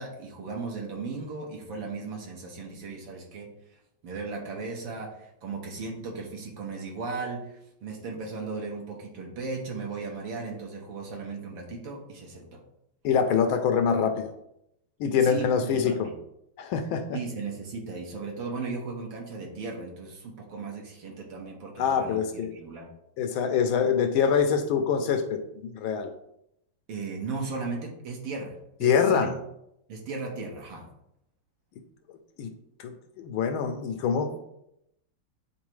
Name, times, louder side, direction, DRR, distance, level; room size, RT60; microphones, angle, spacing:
voice 1, 0.0-3.5 4.0-12.6 15.2-16.1 17.1-22.2 22.5-22.9 26.9-29.3 29.9-30.9, right 4 dB, 65° right, 0 dB, 1.9 m, -36 dB
voice 2, 13.0-14.3 15.0-16.1 16.6-17.2 21.8-22.6 23.2-26.1 28.8-29.3 32.4-32.5 32.8-34.4, left 7 dB, 75° left, 7 dB, 1.3 m, -25 dB
9.3 x 4.0 x 3.1 m, 0.80 s
omnidirectional pair, 2.4 m